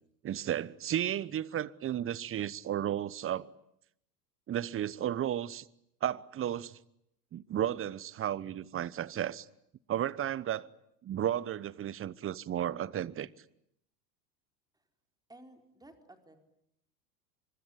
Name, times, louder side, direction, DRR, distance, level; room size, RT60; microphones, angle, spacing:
voice 1, 0.2-3.5 4.5-5.6 6.0-6.8 7.3-9.5 9.9-10.7 11.0-13.3, right 11 dB, 25° right, 1.0 m, -33 dB
voice 2, 15.3-16.4, right 1 dB, 10° right, 4.4 m, -54 dB
25.0 x 23.5 x 10.0 m
hypercardioid pair, 90°, 49 cm